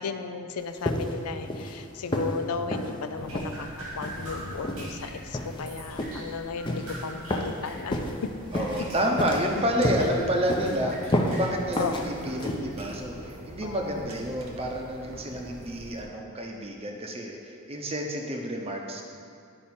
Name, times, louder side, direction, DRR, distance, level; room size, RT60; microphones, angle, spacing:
voice 1, 0.0-8.3 10.2-10.3 10.8-10.9 11.2-11.3 11.8-12.0 13.6-14.1, left 5 dB, 90° left, 9 dB, 0.5 m, -35 dB
sound 1, 0.8-1.2 1.5-1.8 2.1-2.4 2.7-2.9 3.3-3.6 4.0-4.2 4.6-4.9 5.3-5.6 6.0-6.2 6.7-6.9 7.3-7.6 7.9-8.1 8.5-8.8 9.2-9.5 9.8-10.1 10.5-10.8 11.1-11.4 11.8-12.0 12.4-12.6, equal, 20° left, 0.6 m, -29 dB
Drip, 3.2-16.0, equal, 85° right, 2.1 m, -43 dB
sound 2, 8.4-15.6, equal, 70° right, 1.1 m, -46 dB
voice 2, 8.5-19.0, equal, 25° right, 1 dB, 0.7 m, -29 dB
11.0 x 4.7 x 4.3 m, 2.4 s
head